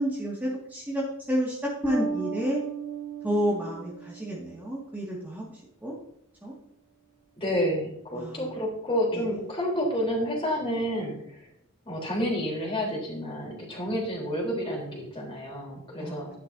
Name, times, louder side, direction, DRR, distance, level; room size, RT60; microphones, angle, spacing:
voice 1, 0.0-1.6 1.8-2.6 3.2-6.0 6.4-6.5 8.1-8.5 9.1-9.2 16.0-16.2, equal, 10° right, -6 dB, 2.2 m, -30 dB
Bass guitar, 1.8-4.5, right 3 dB, 5° left, 2.1 m, -34 dB
voice 2, 7.4-11.5 11.9-16.3, equal, 25° left, -2 dB, 3.9 m, -29 dB
12.5 x 10.5 x 2.8 m, 0.70 s
head